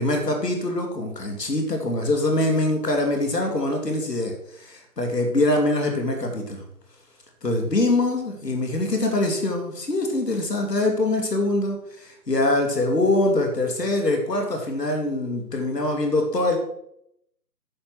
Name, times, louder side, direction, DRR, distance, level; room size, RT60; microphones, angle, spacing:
voice 1, 0.0-6.6 7.4-16.6, left 2 dB, 70° left, 3 dB, 2.8 m, -24 dB
9.7 x 5.6 x 6.3 m, 0.76 s
figure-of-eight pair, 170°, 50 cm